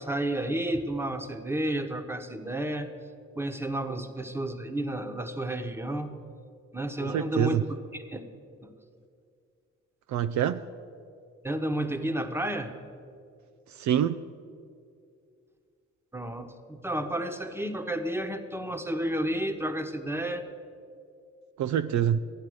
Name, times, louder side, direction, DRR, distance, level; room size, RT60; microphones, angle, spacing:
voice 1, 0.0-2.9 3.4-6.1 6.7-7.6 7.9-8.2 8.6-8.7 11.4-12.7 16.1-20.5, right 1 dB, 10° right, 1.2 m, -31 dB
voice 2, 7.0-7.6 10.1-10.6 13.8-14.2 21.6-22.2, right 10 dB, 65° right, 0.5 m, -26 dB
14.0 x 9.1 x 6.5 m
supercardioid pair, 55°, 31 cm